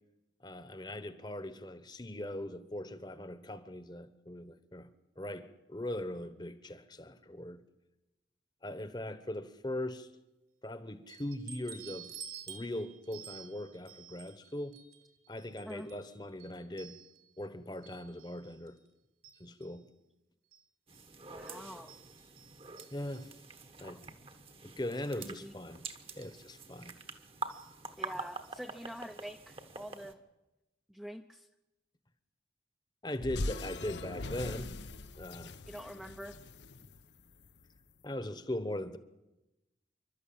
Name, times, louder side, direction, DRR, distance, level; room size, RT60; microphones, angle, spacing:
voice 1, 0.4-7.6 8.6-10.1 10.6-12.1 12.5-14.8 15.3-17.0 17.4-18.8 19.4-19.9 22.9-23.3 23.8-24.0 24.6-25.8 26.1-27.0 33.0-34.7 35.2-35.6 38.0-39.0, left 1 dB, 25° left, 1.1 m, -40 dB
sound 1, 11.1-17.4 17.8-18.9 19.2-19.8 20.5-20.6 20.9-21.0 21.5-23.4 24.5-24.6 24.9-25.1 26.2-26.4 27.5-27.7 28.0-28.1 28.4-28.5, right 8 dB, 60° right, 2.4 m, -52 dB
sound 2, 20.9-30.1, right 3 dB, 30° right, 1.2 m, -46 dB
voice 2, 21.3-21.9 25.1-25.5 28.0-30.2 30.9-31.5 35.7-36.4, equal, ahead, 0.7 m, -45 dB
sound 3, 33.2-37.6, left 2 dB, 75° left, 0.9 m, -41 dB
27.5 x 12.5 x 8.7 m
head